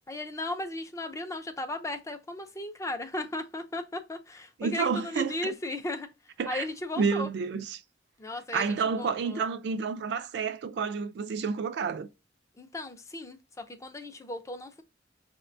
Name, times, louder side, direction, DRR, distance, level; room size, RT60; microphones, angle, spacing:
voice 1, 0.1-6.1 6.5-7.3 8.2-8.7 9.0-9.4 12.6-14.8, left 2 dB, 15° left, 0.4 m, -36 dB
voice 2, 4.6-5.5 6.4-6.7 7.0-7.8 8.5-12.1, right 5 dB, 60° right, 0.3 m, -30 dB
5.8 x 2.2 x 2.5 m
head